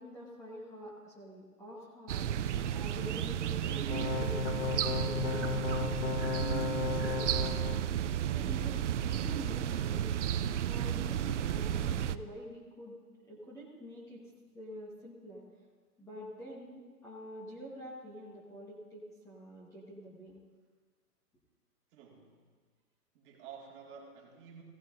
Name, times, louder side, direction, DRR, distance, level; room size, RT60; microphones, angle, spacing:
voice 1, 0.0-6.3 6.5-7.6 8.2-10.2 10.7-13.0 13.2-14.2 14.5-15.4 16.0-20.4, equal, 5° left, -6 dB, 1.2 m, -47 dB
sound 1, 2.1-12.2, right 10 dB, 50° right, 0.5 m, -33 dB
sound 2, 3.9-7.8, left 7 dB, 45° left, 0.6 m, -35 dB
voice 2, 21.9-22.5 23.1-24.6, right 6 dB, 25° right, -1 dB, 2.0 m, -51 dB
16.5 x 13.0 x 2.6 m, 1.5 s
hypercardioid pair, 150°, 46 cm